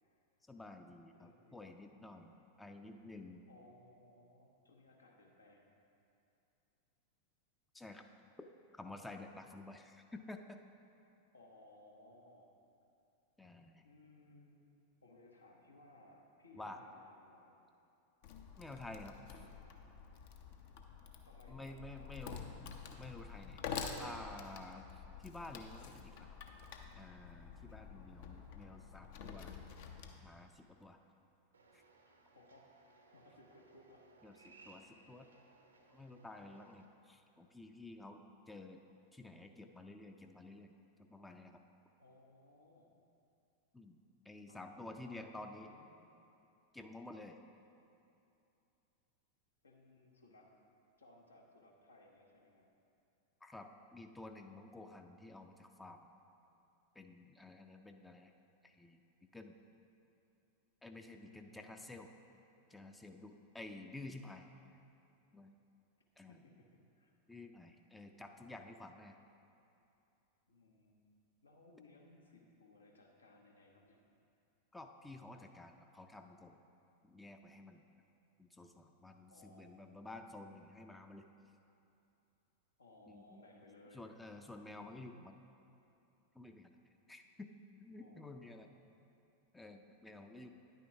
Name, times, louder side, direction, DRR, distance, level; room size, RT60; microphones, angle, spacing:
voice 1, 0.5-3.4 7.7-8.0 8.4-10.6 13.4-13.8 16.5-16.8 18.6-19.5 21.5-22.4 23.0-23.6 24.0-26.4 27.0-29.6 30.2-31.0 31.7-31.8 34.2-35.3 35.9-38.8 39.1-40.7 41.0-41.6 43.7-45.7 46.7-47.4 53.4-56.1 56.9-58.3 58.6-59.0 59.3-59.6 60.8-62.1 62.7-64.5 65.3-65.6 66.2-66.4 67.3-69.2 74.7-76.6 77.0-77.9 78.4-81.3 83.1-83.4 83.9-85.4 86.3-86.8 87.1-87.5 87.8-88.7 89.5-90.5, left 2 dB, 10° left, 5 dB, 0.4 m, -51 dB
voice 2, 1.2-1.7 3.5-5.8 11.3-12.5 13.8-14.6 15.0-17.6 21.2-22.5 27.7-28.6 32.3-32.7 33.1-34.1 34.5-34.7 42.0-42.9 44.5-45.2 45.5-45.9 49.6-50.5 51.0-52.7 61.2-62.1 66.3-67.1 70.5-71.1 71.4-74.0 79.3-80.0 82.8-84.1 88.0-88.8, left 2 dB, 75° left, 0 dB, 1.0 m, -63 dB
Wood, 18.2-30.2, left 6 dB, 50° left, 0.6 m, -48 dB
sound 1, 31.5-36.8, right 3 dB, 75° right, 0.7 m, -64 dB
10.0 x 9.1 x 2.8 m, 2.8 s
figure-of-eight pair, 90°, 0 cm